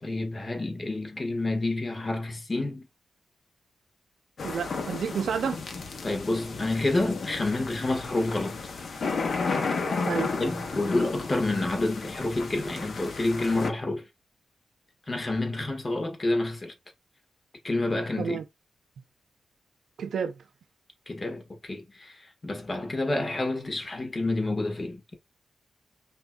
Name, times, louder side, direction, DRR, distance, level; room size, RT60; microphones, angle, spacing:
voice 1, 0.0-2.9 6.0-8.6 10.4-14.0 15.1-16.7 17.6-18.4 21.1-25.2, left 2 dB, 30° left, 1.3 m, -29 dB
sound 1, 4.4-13.7, left 4 dB, 60° left, 1.0 m, -33 dB
voice 2, 4.4-5.6 10.1-10.3 18.2-18.4 20.0-20.4, right 7 dB, 80° right, 0.5 m, -30 dB
5.2 x 2.6 x 2.2 m
cardioid pair, 80°, 0 cm